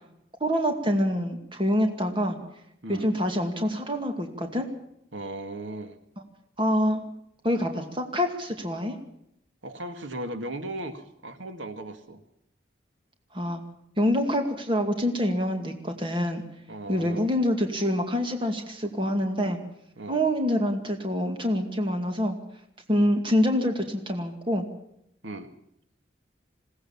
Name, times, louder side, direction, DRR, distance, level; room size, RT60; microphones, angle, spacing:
voice 1, 0.4-2.4 2.9-4.7 6.6-7.0 7.4-9.0 13.3-13.6 14.0-16.4 16.9-19.6 20.1-22.4 22.9-24.6, equal, 25° right, 5 dB, 2.3 m, -26 dB
voice 2, 5.1-6.0 9.6-12.2 16.7-17.3 20.0-20.2 22.9-23.1 25.2-25.5, right 1 dB, 85° right, 8 dB, 2.0 m, -37 dB
21.0 x 17.5 x 7.2 m, 0.77 s
head